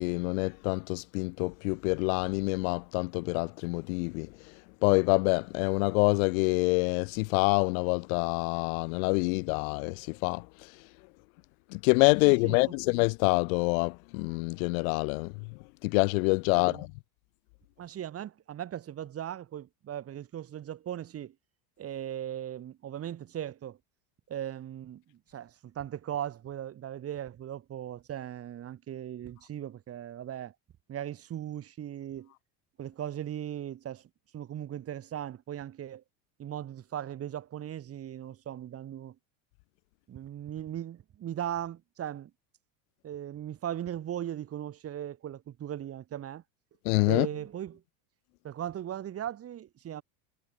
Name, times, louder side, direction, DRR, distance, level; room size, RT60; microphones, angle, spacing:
voice 1, 0.0-4.3 4.8-10.7 11.7-15.3 15.8-16.9 46.9-47.3, left 32 dB, 60° left, 0.5 m, -26 dB
voice 2, 12.2-12.8 16.6-16.8 17.8-21.3 21.8-23.8 24.3-30.5 30.9-32.3 32.8-36.0 36.4-39.2 40.1-42.3 43.0-46.4 47.1-47.8 48.4-50.0, right 11 dB, 30° right, 2.7 m, -38 dB
supercardioid pair, 145°, 47 cm